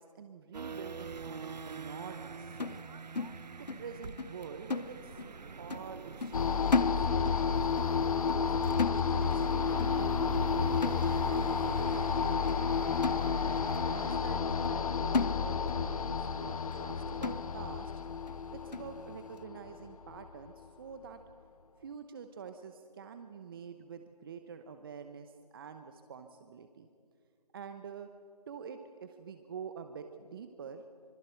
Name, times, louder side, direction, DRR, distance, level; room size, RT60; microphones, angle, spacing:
voice 1, 0.0-2.9 3.6-5.2 5.6-8.6 9.1-13.1 13.9-17.9 18.5-21.2 21.8-26.9 27.5-28.1 28.5-30.8, right 6 dB, 35° right, 8 dB, 0.9 m, -47 dB
sound 1, 0.5-14.2, right 5 dB, 85° right, 0.7 m, -45 dB
sound 2, 2.6-3.9 4.2-4.4 4.7-5.4 5.7-5.9 6.2-7.5 7.8-8.0 8.3-8.5 8.8-9.5 9.8-10.0 10.3-10.5 10.8-11.5 11.9-12.0 12.5-12.6 13.0-13.7 14.1-14.2 14.6-14.8 15.1-15.9 16.2-16.3 16.7-16.8 17.2-17.8 18.3-18.4 18.7-18.9, left 4 dB, 85° left, 0.9 m, -35 dB
sound 3, 6.3-20.5, left 6 dB, 60° left, 0.9 m, -31 dB
25.5 x 24.5 x 4.6 m, 2.3 s
figure-of-eight pair, 155°, 21 cm